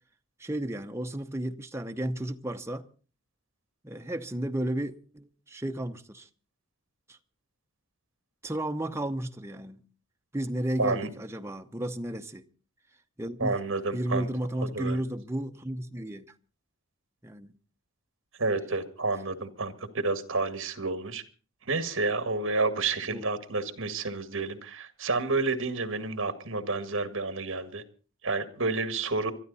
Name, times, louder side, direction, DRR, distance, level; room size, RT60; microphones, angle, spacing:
voice 1, 0.4-2.9 3.8-6.3 7.1-7.2 8.4-9.8 10.3-12.5 13.2-13.6 13.9-16.2 17.2-17.5 23.1-23.2, right 1 dB, 10° right, 0.8 m, -33 dB
voice 2, 10.8-11.1 13.4-14.3 14.7-15.0 18.4-21.2 21.7-27.8 28.2-29.3, right 3 dB, 60° right, 1.9 m, -30 dB
23.5 x 12.5 x 4.1 m
head